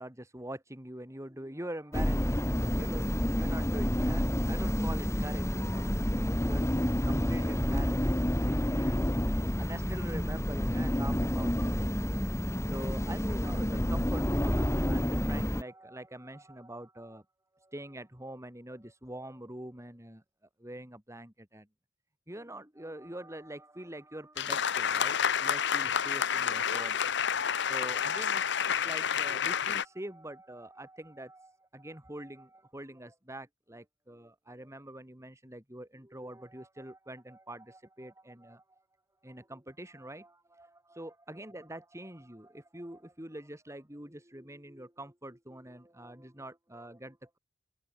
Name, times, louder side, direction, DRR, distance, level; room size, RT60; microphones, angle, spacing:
voice 1, 0.0-11.9 12.3-17.2 17.5-20.2 20.6-21.7 22.3-38.8 39.2-47.4, right 1 dB, 15° right, 5.1 m, -45 dB
sound 1, 1.9-15.6, equal, 15° left, 1.9 m, -29 dB
sound 2, 24.4-29.8, left 7 dB, 65° left, 1.0 m, -29 dB
open air
head